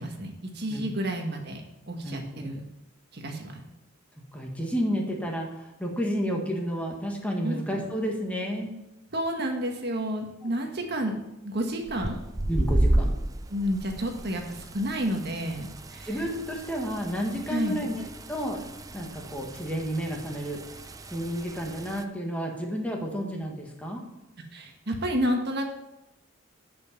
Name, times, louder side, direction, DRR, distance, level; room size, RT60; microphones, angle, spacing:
voice 1, 0.0-2.6 3.1-3.6 7.4-7.8 9.1-11.1 11.4-12.2 13.5-16.2 17.5-17.8 24.5-25.6, equal, 55° right, 3 dB, 1.5 m, -30 dB
voice 2, 2.0-2.5 4.3-8.8 10.4-10.5 12.5-13.2 16.0-18.0 18.3-18.6 18.9-20.6 21.1-24.1, equal, 5° left, 0 dB, 1.6 m, -31 dB
sound 1, 11.9-22.0, right 1 dB, 15° right, 0.5 m, -32 dB
11.0 x 5.4 x 7.3 m, 0.92 s
head